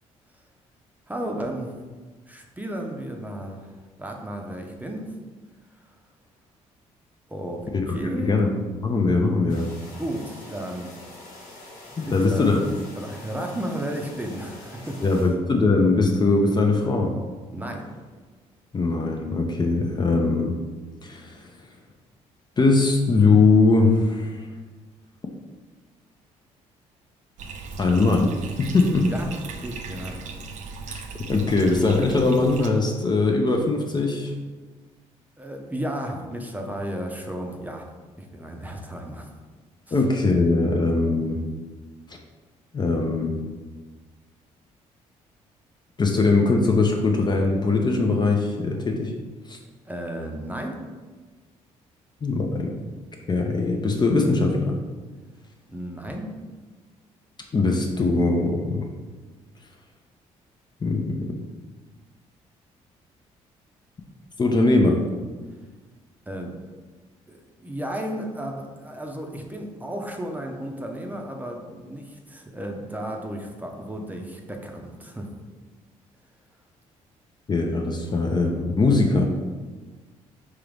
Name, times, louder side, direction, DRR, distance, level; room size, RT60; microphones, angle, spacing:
voice 1, 1.1-1.7 2.3-5.2 7.3-8.4 10.0-10.9 12.1-12.5 12.9-15.0 17.5-17.9 29.1-30.3 35.4-37.8 38.2-39.3 39.9-40.0 49.9-50.8 55.7-56.3 66.3-66.5 67.3-75.3, right 1 dB, 10° right, 1 dB, 0.7 m, -33 dB
voice 2, 7.7-8.5 8.8-9.7 12.0-12.6 15.0-17.2 18.7-20.6 21.0-21.5 22.6-24.5 27.8-28.3 28.6-29.1 30.9-34.3 39.9-41.4 42.1-42.2 42.7-43.3 46.0-49.1 49.5-49.6 52.2-52.8 53.3-54.8 57.5-58.9 60.8-61.4 64.4-65.0 77.5-79.3, left 3 dB, 30° left, 2 dB, 0.6 m, -21 dB
sound 1, 9.5-15.2, left 2 dB, 85° left, 0.9 m, -45 dB
Bathtub (filling or washing), 27.4-32.7, right 4 dB, 60° right, 0.5 m, -37 dB
3.6 x 2.9 x 3.3 m, 1.3 s
supercardioid pair, 60°, 14 cm